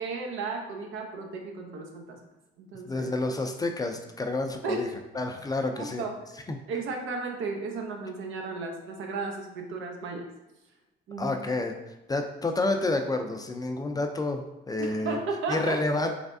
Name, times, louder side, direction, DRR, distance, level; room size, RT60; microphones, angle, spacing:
voice 1, 0.0-2.2 2.6-3.1 4.6-4.9 5.7-6.2 6.7-10.3 11.1-11.3 14.8-15.8, right 3 dB, 80° right, 2 dB, 0.7 m, -34 dB
voice 2, 2.9-4.9 5.1-6.0 6.5-6.6 11.2-11.7 12.1-15.2 15.5-16.1, left 2 dB, 20° left, 5 dB, 0.4 m, -29 dB
3.3 x 3.3 x 2.5 m, 0.95 s
cardioid pair, 90°, 20 cm